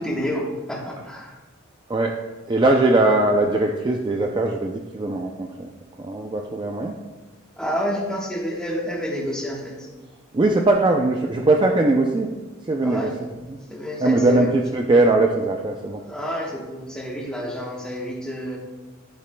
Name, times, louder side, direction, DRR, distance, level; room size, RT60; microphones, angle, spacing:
voice 1, 0.0-1.3 7.6-9.9 12.8-13.1 13.7-14.5 16.0-18.6, equal, 5° left, -3 dB, 1.2 m, -29 dB
voice 2, 1.9-2.2 2.5-5.7 6.0-7.0 10.3-12.3 12.6-13.1 13.5-13.6 14.0-16.0, right 2 dB, 20° right, 2 dB, 0.4 m, -20 dB
10.5 x 7.9 x 2.2 m, 1.2 s
head